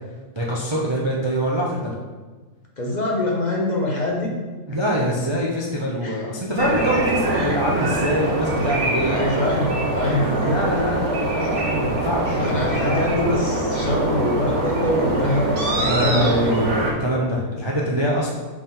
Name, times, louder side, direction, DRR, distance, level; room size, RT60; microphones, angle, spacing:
voice 1, 0.3-2.0 4.7-9.4 10.0-10.2 10.5-13.0 15.8-18.3, equal, 40° right, -3 dB, 0.4 m, -24 dB
voice 2, 2.8-4.3 6.0-6.2 7.3-7.6 9.0-10.6 12.4-16.6, left 1 dB, 35° left, -2 dB, 0.9 m, -24 dB
sound 1, 6.6-16.9, right 1 dB, 55° right, 1.2 m, -23 dB
5.4 x 4.9 x 3.7 m, 1.3 s
omnidirectional pair, 1.6 m